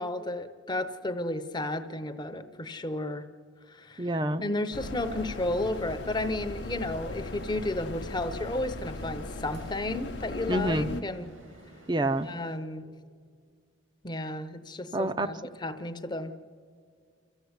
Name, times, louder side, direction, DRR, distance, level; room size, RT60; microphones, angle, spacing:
voice 1, 0.0-3.2 3.7-4.1 4.4-11.3 12.2-12.9 14.0-16.3, left 2 dB, 20° left, 9 dB, 0.8 m, -33 dB
voice 2, 4.0-4.4 10.5-10.9 11.9-12.3 14.9-15.3, right 1 dB, 20° right, 10 dB, 0.6 m, -27 dB
sound 1, 4.7-11.0, left 2 dB, 55° left, 0.8 m, -38 dB
sound 2, 5.1-12.6, right 1 dB, 80° right, 2.7 m, -53 dB
28.5 x 14.0 x 8.1 m, 2.1 s
head